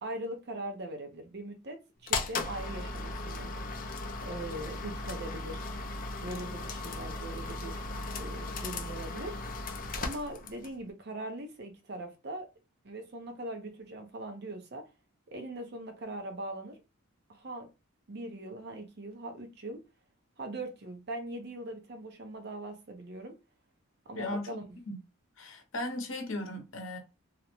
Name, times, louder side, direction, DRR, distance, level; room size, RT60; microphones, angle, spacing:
voice 1, 0.0-3.5 4.2-5.7 6.2-7.8 8.2-9.4 10.0-12.5 12.8-14.9 15.3-16.8 17.3-17.7 18.1-19.8 20.4-23.3 24.1-24.6, right 1 dB, 50° right, 0.6 m, -41 dB
sound 1, 2.1-10.8, left 3 dB, 40° left, 0.3 m, -37 dB
voice 2, 24.2-24.5 24.9-25.0 25.4-27.0, left 1 dB, 70° left, 0.7 m, -36 dB
2.5 x 2.1 x 2.9 m
head